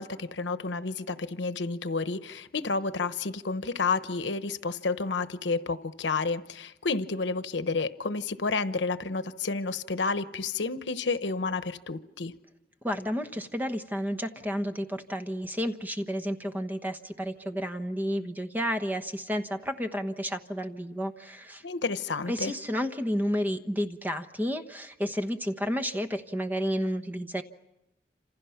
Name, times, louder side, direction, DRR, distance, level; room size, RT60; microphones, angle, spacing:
voice 1, 0.0-12.3 21.6-22.5, left 4 dB, 90° left, 12 dB, 1.0 m, -30 dB
voice 2, 12.8-21.6 22.3-27.4, equal, 10° right, 8 dB, 1.1 m, -31 dB
28.0 x 27.0 x 5.8 m, 0.91 s
head